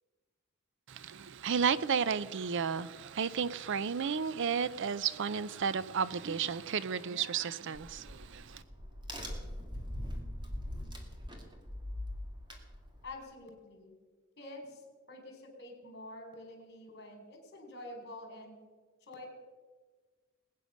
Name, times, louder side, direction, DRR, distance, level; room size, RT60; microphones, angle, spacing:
voice 1, 1.1-8.1, right 6 dB, 60° right, 0.5 m, -32 dB
Crack, 7.7-13.2, left 1 dB, 20° right, 2.3 m, -42 dB
voice 2, 13.0-13.9 14.4-18.6 19.0-19.3, left 2 dB, 55° left, 4.2 m, -48 dB
20.5 x 9.4 x 6.4 m
head